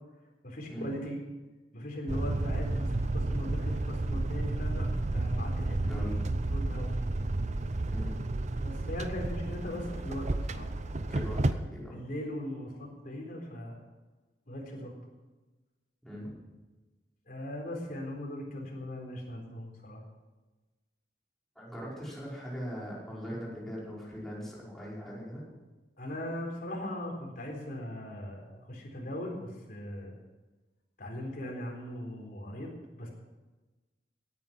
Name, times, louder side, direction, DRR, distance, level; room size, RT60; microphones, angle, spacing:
voice 1, 0.4-1.2 1.7-6.9 8.6-11.1 11.6-13.8 14.5-14.9 17.3-20.0 26.0-30.2 31.0-32.7 33.0-33.1, left 1 dB, 50° left, 0 dB, 4.0 m, -39 dB
sound 1, 2.1-11.5, right 2 dB, 40° right, 0.6 m, -31 dB
voice 2, 7.9-8.2 11.1-12.0 16.0-16.3 21.6-25.4, equal, ahead, -6 dB, 5.2 m, -40 dB
17.5 x 9.7 x 6.1 m, 1.2 s
head